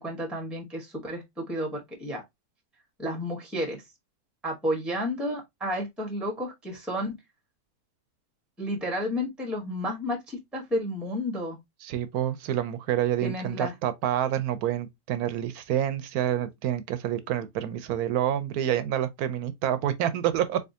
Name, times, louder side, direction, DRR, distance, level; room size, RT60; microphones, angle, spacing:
voice 1, 0.0-2.2 3.0-3.8 4.4-7.1 8.6-11.6 13.2-13.7, equal, ahead, 1.1 m, -31 dB
voice 2, 11.8-20.6, right 11 dB, 80° right, 1.1 m, -28 dB
4.0 x 3.4 x 2.7 m
omnidirectional pair, 1.6 m